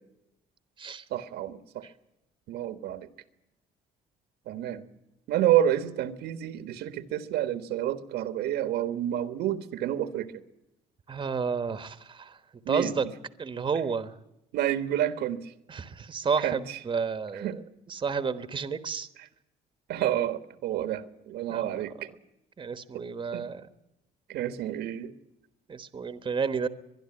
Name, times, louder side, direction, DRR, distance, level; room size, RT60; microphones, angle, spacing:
voice 1, 1.1-1.9 2.5-3.1 4.5-4.9 5.3-10.3 12.6-13.0 14.5-15.5 16.4-16.8 17.3-17.6 19.9-22.1 23.3-23.5 24.3-25.1, right 11 dB, 75° right, 10 dB, 1.4 m, -29 dB
voice 2, 11.1-12.4 12.7-13.0 13.4-14.1 15.7-17.6 17.9-19.1 21.5-21.8 22.6-23.6 25.7-26.7, right 5 dB, 30° right, 11 dB, 1.2 m, -31 dB
23.0 x 11.5 x 9.8 m, 0.90 s
cardioid pair, 110°, 17 cm